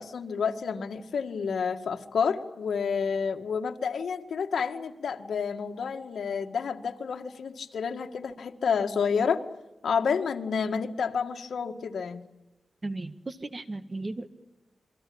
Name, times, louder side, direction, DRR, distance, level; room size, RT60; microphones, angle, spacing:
voice 1, 0.0-9.4 9.8-12.2, left 6 dB, 85° left, 5 dB, 2.0 m, -29 dB
voice 2, 12.8-14.3, right 2 dB, 30° right, 11 dB, 1.8 m, -35 dB
28.0 x 23.5 x 8.8 m, 1.0 s
wide cardioid pair, 105°, 0 cm